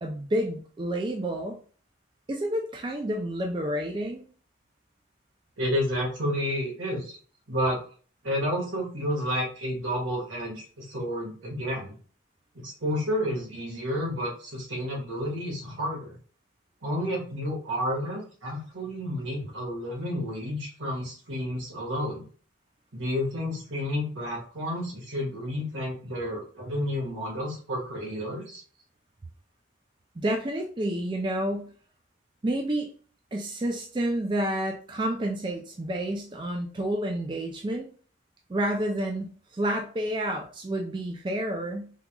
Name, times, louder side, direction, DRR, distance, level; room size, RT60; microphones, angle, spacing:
voice 1, 0.0-1.6 2.3-4.2 30.2-31.7 32.4-32.9 33.3-37.9 38.5-41.9, right 1 dB, 25° right, 1 dB, 0.4 m, -29 dB
voice 2, 5.6-7.2 7.5-7.8 8.2-11.9 12.5-16.2 16.8-22.2 22.9-28.6, equal, 80° right, -2 dB, 1.6 m, -30 dB
3.7 x 2.9 x 2.3 m, 0.42 s
head